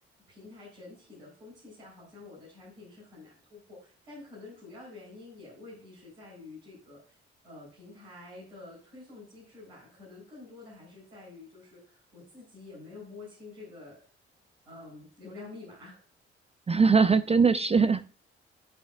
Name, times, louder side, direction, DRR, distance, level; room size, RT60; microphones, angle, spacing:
voice 1, 0.3-7.2 7.4-14.0 14.7-16.1, left 3 dB, 85° right, -5 dB, 3.8 m, -48 dB
voice 2, 16.7-18.1, right 5 dB, 20° right, 12 dB, 0.5 m, -21 dB
12.0 x 5.3 x 2.3 m, 0.40 s
figure-of-eight pair, 45°, 32 cm